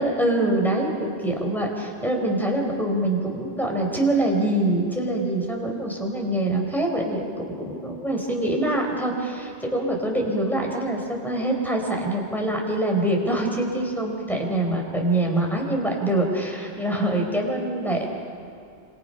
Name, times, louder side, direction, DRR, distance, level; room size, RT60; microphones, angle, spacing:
voice 1, 0.0-18.1, right 1 dB, ahead, 0 dB, 4.4 m, -24 dB
27.5 x 27.0 x 5.7 m, 2.4 s
omnidirectional pair, 1.3 m